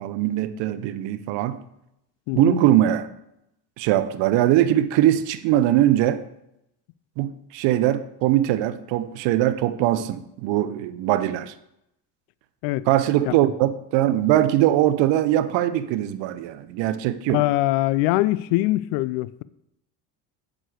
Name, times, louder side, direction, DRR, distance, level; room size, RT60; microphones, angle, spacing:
voice 1, 0.0-1.6 2.3-3.1 3.8-6.2 7.2-11.5 12.9-17.4, right 13 dB, 75° right, 0.7 m, -21 dB
voice 2, 2.3-2.6 12.6-12.9 13.2-13.3 17.3-19.4, left 17 dB, 80° left, 0.5 m, -23 dB
8.1 x 6.2 x 4.8 m
supercardioid pair, 85°, 44 cm